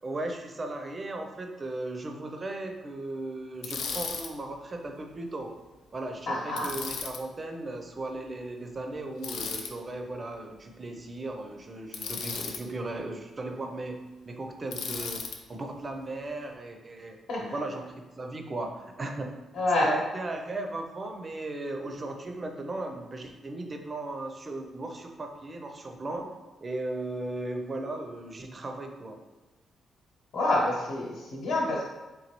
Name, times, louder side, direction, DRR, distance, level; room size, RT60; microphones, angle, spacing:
voice 1, 0.0-5.5 5.9-14.0 14.3-15.2 15.5-19.3 19.8-26.3 26.6-29.2, right 2 dB, 25° right, 4 dB, 0.4 m, -36 dB
Bicycle, 3.6-4.3 6.6-7.2 9.2-9.7 11.9-12.6 14.7-15.4, left 5 dB, 85° left, 0.4 m, -35 dB
voice 2, 6.3-6.7 17.3-17.6 19.5-19.9 30.3-31.9, left 2 dB, 70° left, -3 dB, 1.1 m, -27 dB
4.0 x 3.4 x 2.9 m, 1.1 s
wide cardioid pair, 170°, 0 cm